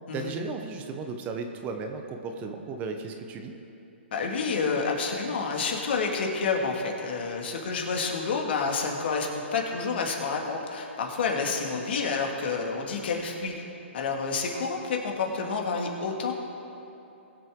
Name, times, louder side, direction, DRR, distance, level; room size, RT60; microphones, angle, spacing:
voice 1, 0.1-3.5, right 4 dB, 20° right, 5 dB, 0.9 m, -35 dB
voice 2, 4.1-13.7 13.9-16.3, left 4 dB, 60° left, 1 dB, 2.1 m, -29 dB
21.0 x 7.7 x 3.8 m, 2.9 s
hypercardioid pair, 140°, 7 cm